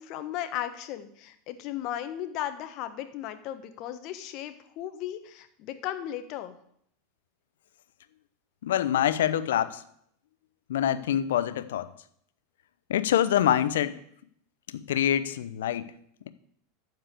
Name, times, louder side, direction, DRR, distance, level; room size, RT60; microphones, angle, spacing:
voice 1, 0.0-6.5, left 12 dB, 50° left, 9 dB, 1.2 m, -36 dB
voice 2, 8.6-9.8 10.7-11.9 12.9-14.0 14.7-15.9, left 10 dB, 70° left, 13 dB, 0.7 m, -25 dB
12.5 x 4.7 x 8.2 m, 0.68 s
hypercardioid pair, 85°, 0 cm